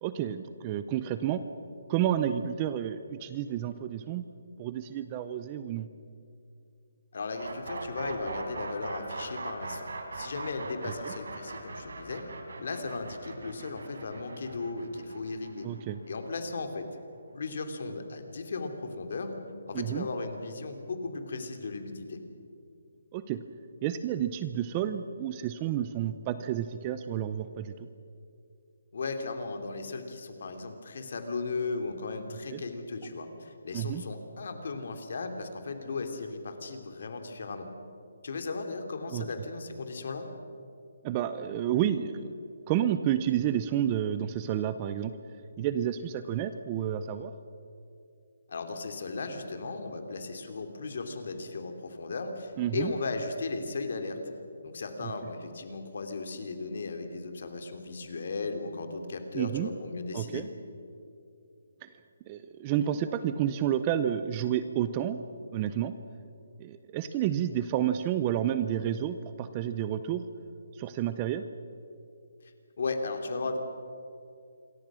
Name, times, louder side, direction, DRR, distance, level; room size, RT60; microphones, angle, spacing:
voice 1, 0.0-1.4 1.9-4.2 4.6-5.9 10.8-11.1 15.6-16.0 19.7-20.1 23.1-23.4 23.8-27.9 32.5-32.6 33.7-34.0 39.1-39.3 41.0-42.3 42.7-45.1 45.6-47.3 52.6-52.9 59.3-59.7 60.1-60.5 61.8-61.9 62.3-65.2 65.5-66.0 66.6-70.2 70.7-71.4, right 10 dB, 15° right, 11 dB, 0.5 m, -30 dB
voice 2, 7.1-12.2 12.6-15.7 16.1-16.9 17.3-19.4 19.7-22.2 28.9-37.7 38.2-40.3 48.5-54.2 54.6-60.4 72.4-73.6, left 3 dB, 45° left, 6 dB, 2.8 m, -36 dB
sound 1, 7.4-17.2, right 3 dB, 75° right, 5.0 m, -40 dB
27.5 x 23.0 x 6.2 m, 2.6 s
hypercardioid pair, 180°, 0 cm